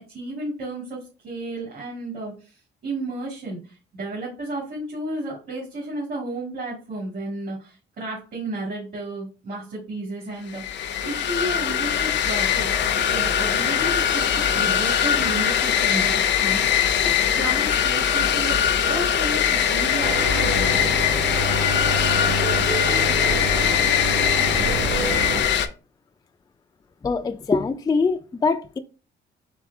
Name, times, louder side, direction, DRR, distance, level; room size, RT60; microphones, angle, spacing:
voice 1, 0.1-20.8, right 2 dB, 50° right, 2.2 m, -33 dB
sound 1, 10.5-25.7, left 9 dB, 65° left, 0.6 m, -21 dB
sound 2, 20.0-25.4, right 1 dB, 85° right, 2.2 m, -27 dB
voice 2, 27.0-28.8, left 4 dB, 20° left, 0.3 m, -23 dB
4.7 x 3.9 x 2.7 m
cardioid pair, 90°, 20 cm